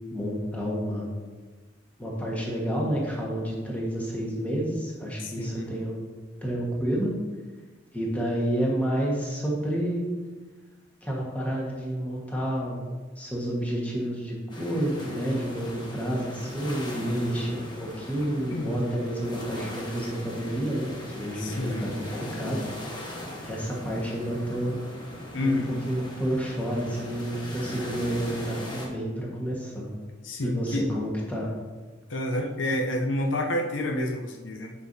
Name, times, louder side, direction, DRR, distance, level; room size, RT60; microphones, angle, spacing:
voice 1, 0.1-1.1 2.0-6.0 6.4-7.1 7.9-10.1 11.0-12.8 13.2-24.8 25.4-29.9 30.4-31.5, right 1 dB, 10° left, -4 dB, 1.5 m, -30 dB
voice 2, 5.2-5.7 17.1-17.3 18.5-18.8 21.4-21.9 25.3-25.7 30.2-30.9 32.1-34.7, left 1 dB, 80° left, 3 dB, 0.7 m, -29 dB
sound 1, 14.5-28.9, left 1 dB, 25° left, 1.1 m, -39 dB
9.8 x 5.3 x 2.8 m, 1.3 s
head